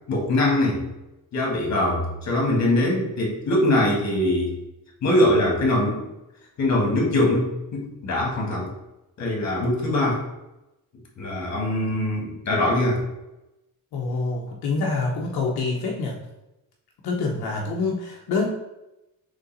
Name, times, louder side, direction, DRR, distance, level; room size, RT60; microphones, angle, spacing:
voice 1, 0.1-0.9 1.3-4.6 5.0-6.0 6.6-8.7 9.2-10.2 11.2-13.0, left 1 dB, 45° left, -1 dB, 1.6 m, -22 dB
voice 2, 13.9-16.2 17.0-18.5, left 3 dB, 85° left, -1 dB, 0.8 m, -26 dB
4.0 x 3.4 x 4.0 m, 0.94 s
cardioid pair, 130°, 37 cm